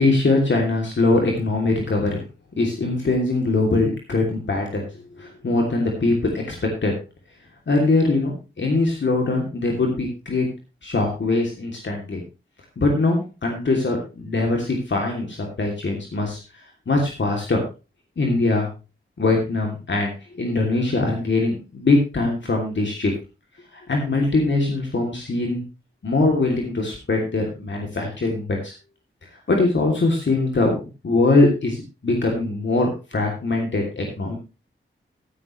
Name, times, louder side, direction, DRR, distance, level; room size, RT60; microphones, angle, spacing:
voice 1, 0.0-2.2 2.6-4.9 5.2-6.6 6.8-6.9 7.7-10.5 10.8-12.2 12.8-16.4 16.9-17.6 18.2-18.7 19.2-23.1 23.7-25.6 26.0-28.7 29.5-34.4, left 2 dB, 65° left, 0 dB, 2.9 m, -22 dB
14.5 x 11.0 x 3.2 m, 0.29 s
cardioid pair, 65°, 21 cm